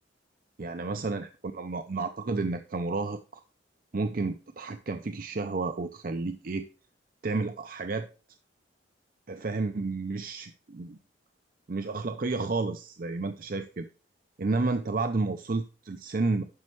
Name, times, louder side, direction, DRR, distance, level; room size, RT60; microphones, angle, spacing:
voice 1, 0.6-3.4 3.9-6.7 7.2-8.1 9.3-11.0 11.7-13.9 14.4-16.4, right 3 dB, 50° right, 8 dB, 0.5 m, -31 dB
11.5 x 5.4 x 3.1 m, 0.37 s
head